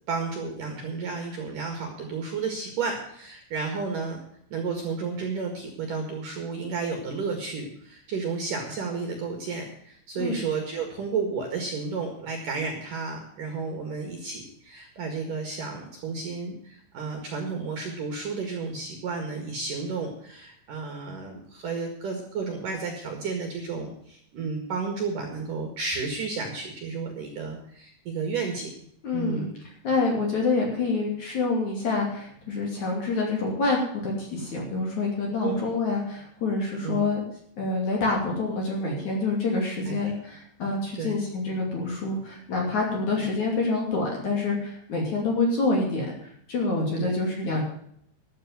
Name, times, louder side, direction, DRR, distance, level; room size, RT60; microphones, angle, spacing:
voice 1, 0.1-4.2 4.5-28.7 29.1-29.5 35.4-35.6 36.8-37.0 39.9-40.1 41.0-41.1 47.0-47.1, right 4 dB, 55° right, 3 dB, 2.8 m, -32 dB
voice 2, 29.0-29.5 29.8-37.2 37.6-47.6, left 3 dB, 45° left, -1 dB, 3.6 m, -27 dB
13.0 x 8.2 x 7.4 m, 0.68 s
omnidirectional pair, 5.7 m